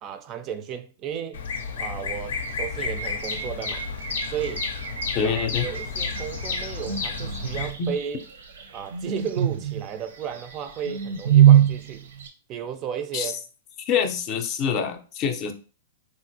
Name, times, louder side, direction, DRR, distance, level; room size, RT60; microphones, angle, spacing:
voice 1, 0.0-1.4 1.8-3.9 4.3-4.7 5.2-8.2 8.7-12.1 12.5-13.4 14.7-14.9, right 8 dB, 30° right, 0.3 m, -34 dB
Bird vocalization bird call bird song, 1.3-7.7, left 5 dB, 85° left, 0.6 m, -32 dB
sound 1, 2.3-12.3, right 10 dB, 80° right, 0.6 m, -25 dB
voice 2, 5.1-5.7 7.8-7.9 13.1-13.3 13.8-15.5, left 7 dB, 35° left, 0.5 m, -25 dB
3.1 x 2.5 x 2.7 m
hypercardioid pair, 135°, 0 cm